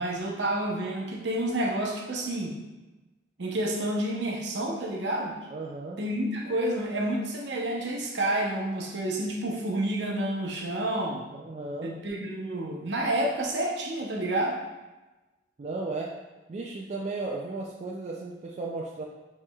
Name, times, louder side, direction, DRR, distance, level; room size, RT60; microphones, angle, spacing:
voice 1, 0.0-2.6 3.4-5.4 6.0-11.2 11.8-14.6, right 1 dB, 65° right, 0 dB, 0.8 m, -29 dB
voice 2, 5.5-6.0 11.3-12.0 15.6-16.1 16.5-19.0, right 3 dB, 40° right, -2 dB, 0.4 m, -35 dB
6.4 x 3.1 x 2.3 m, 1.1 s
head